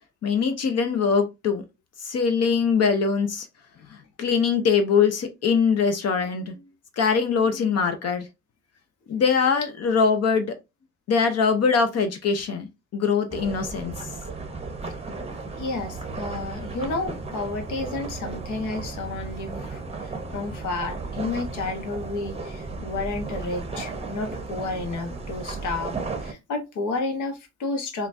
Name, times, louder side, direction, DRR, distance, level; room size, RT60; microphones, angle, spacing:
voice 1, 0.2-1.6 2.0-3.5 3.9-6.6 7.0-8.3 9.1-10.5 11.1-12.7 12.9-14.1, left 5 dB, 55° left, 0.6 m, -22 dB
sound 1, 13.3-26.3, right 3 dB, 20° right, 0.6 m, -35 dB
voice 2, 15.6-28.1, left 3 dB, 80° left, 1.0 m, -31 dB
3.8 x 2.3 x 2.5 m
cardioid pair, 90°, 30 cm